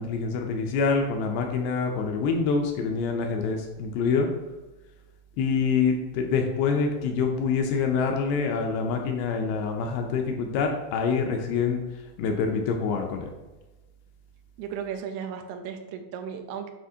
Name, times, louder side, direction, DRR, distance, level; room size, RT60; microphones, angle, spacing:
voice 1, 0.0-4.3 5.4-11.8 12.2-13.3, left 5 dB, 80° left, 3 dB, 2.3 m, -26 dB
voice 2, 14.6-16.7, right 7 dB, 85° right, 7 dB, 2.6 m, -35 dB
8.7 x 4.2 x 2.7 m, 1.1 s
omnidirectional pair, 4.7 m